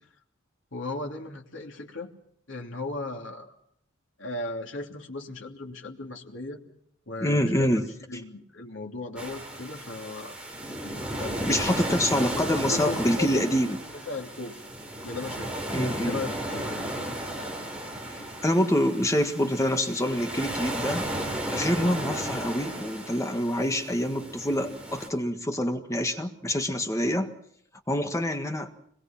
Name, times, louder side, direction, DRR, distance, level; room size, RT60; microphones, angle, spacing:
voice 1, 0.7-2.1 2.5-3.6 4.2-6.6 7.1-7.7 8.1-10.4 11.2-11.6 12.2-13.4 14.0-14.7 15.0-16.8, left 2 dB, 75° left, 1 dB, 2.9 m, -37 dB
voice 2, 7.2-7.9 11.3-13.8 15.7-16.2 18.4-21.0 21.5-27.3 27.9-28.7, equal, 15° left, 5 dB, 1.6 m, -26 dB
sound 1, 9.2-25.1, right 1 dB, 5° right, 4.7 m, -34 dB
26.0 x 22.0 x 5.9 m, 0.69 s
head